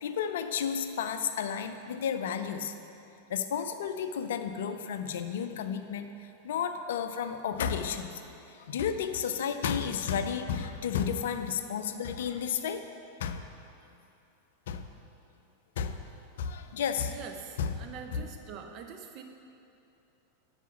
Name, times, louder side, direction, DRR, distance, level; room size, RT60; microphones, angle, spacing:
voice 1, 0.0-2.7 3.3-8.2 8.5-12.8 13.2-13.4 14.7-14.9 15.8-16.0 16.4-17.2 17.6-17.8 18.1-18.3, left 7 dB, 60° left, 9 dB, 0.4 m, -32 dB
voice 2, 17.1-19.2, right 6 dB, 40° right, 4 dB, 0.7 m, -44 dB
8.3 x 4.9 x 5.6 m, 2.7 s
figure-of-eight pair, 90°, 0 cm